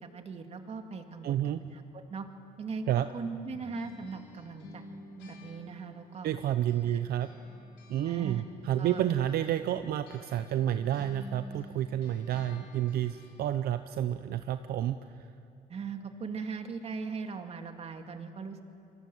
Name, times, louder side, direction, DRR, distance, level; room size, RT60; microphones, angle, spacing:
voice 1, 0.0-2.3 2.6-2.8 3.1-4.9 5.2-6.3 6.8-7.0 8.0-8.4 8.8-9.1 15.7-18.6, right 5 dB, 40° right, 5 dB, 2.3 m, -39 dB
voice 2, 1.2-1.6 2.9-3.1 6.2-7.3 7.9-15.3, right 11 dB, 65° right, 10 dB, 0.8 m, -30 dB
sound 1, 3.5-6.9 7.2-13.6, left 1 dB, 85° left, 5.9 m, -52 dB
28.5 x 23.5 x 7.9 m, 2.6 s
cardioid pair, 110°, 17 cm